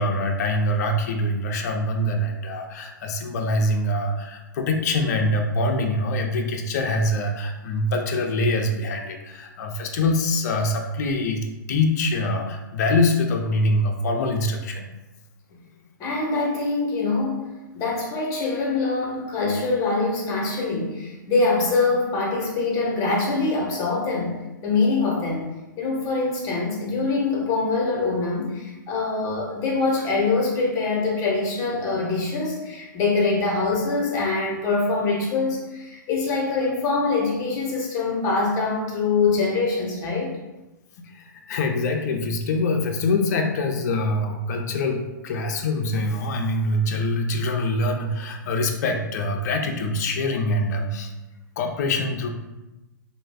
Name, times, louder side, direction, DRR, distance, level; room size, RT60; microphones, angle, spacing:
voice 1, 0.0-14.9 41.0-51.1 51.6-52.3, left 2 dB, 55° left, 3 dB, 0.4 m, -24 dB
voice 2, 16.0-17.5 17.7-25.5 25.8-40.4, left 3 dB, 30° left, -2 dB, 0.8 m, -24 dB
2.3 x 2.0 x 3.3 m, 1.0 s
hypercardioid pair, 120°, 11 cm